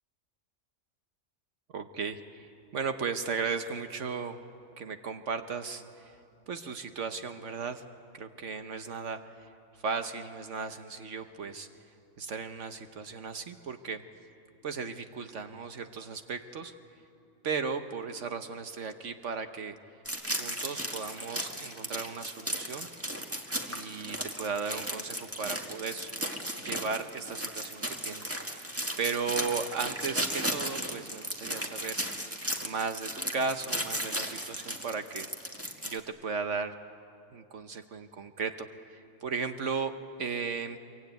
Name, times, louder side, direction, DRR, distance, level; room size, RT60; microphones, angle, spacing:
voice 1, 1.7-4.4 4.8-6.1 6.5-7.8 8.1-9.5 9.8-11.7 12.2-14.0 14.6-16.7 17.4-19.7 20.4-22.9 23.6-26.1 26.4-28.6 29.0-32.0 32.6-35.3 35.8-36.7 37.3-39.9 40.2-40.8, right 5 dB, 70° right, 8 dB, 1.3 m, -36 dB
sound 1, 20.1-36.0, equal, 10° right, 1.8 m, -35 dB
24.5 x 23.5 x 9.2 m, 2.6 s
omnidirectional pair, 1.3 m